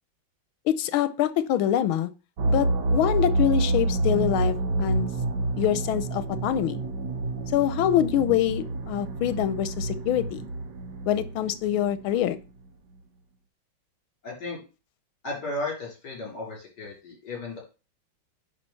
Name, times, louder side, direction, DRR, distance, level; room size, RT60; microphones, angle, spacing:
voice 1, 0.7-2.1 2.5-5.1 5.6-6.8 7.5-10.5 11.1-12.4, left 11 dB, 85° left, 13 dB, 1.6 m, -25 dB
sound 1, 2.4-12.2, right 2 dB, 65° right, 1.4 m, -28 dB
voice 2, 14.2-14.6 15.2-17.6, left 2 dB, 55° left, -3 dB, 4.1 m, -34 dB
9.8 x 3.4 x 5.6 m, 0.31 s
omnidirectional pair, 2.2 m